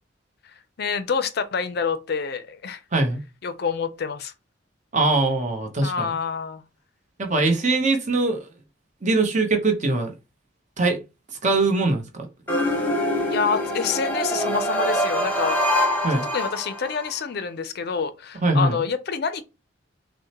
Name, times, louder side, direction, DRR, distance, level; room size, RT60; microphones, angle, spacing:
voice 1, 0.8-2.8 3.4-4.3 5.8-6.6 13.3-15.6 16.3-19.4, left 5 dB, 55° left, 0.5 m, -27 dB
voice 2, 4.9-6.1 7.2-8.5 9.0-10.1 10.8-11.0 11.4-12.3 16.0-16.2 18.4-18.7, right 2 dB, 40° right, 0.9 m, -21 dB
sound 1, 12.5-17.1, equal, 10° left, 1.0 m, -24 dB
6.2 x 2.1 x 2.9 m
head